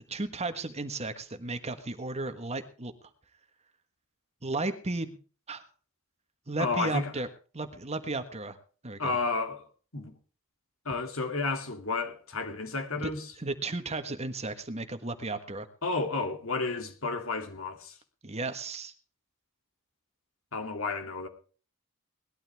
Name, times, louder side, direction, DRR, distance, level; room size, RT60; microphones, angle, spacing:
voice 1, 0.1-2.9 4.4-5.1 5.5-5.6 6.5-7.3 7.5-8.6 8.8-9.2 13.0-13.1 13.4-15.7 18.2-18.9, right 2 dB, 30° right, 1.4 m, -34 dB
voice 2, 6.6-7.1 9.0-9.7 9.9-10.1 10.8-13.2 15.8-18.0 20.5-21.3, left 3 dB, 70° left, 2.8 m, -31 dB
19.5 x 12.5 x 3.6 m
head